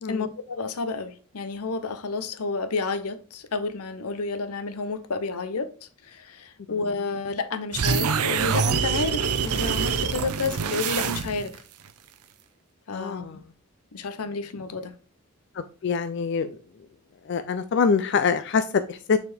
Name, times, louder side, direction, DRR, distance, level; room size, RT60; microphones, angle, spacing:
voice 1, 0.1-11.5 12.9-13.2 13.9-14.9, left 4 dB, 85° left, 0.7 m, -30 dB
sound 1, 7.7-11.6, right 6 dB, 90° right, 0.6 m, -25 dB
voice 2, 12.9-13.4 15.5-16.6 17.3-19.2, left 5 dB, 50° left, 0.4 m, -25 dB
6.8 x 4.2 x 3.4 m
head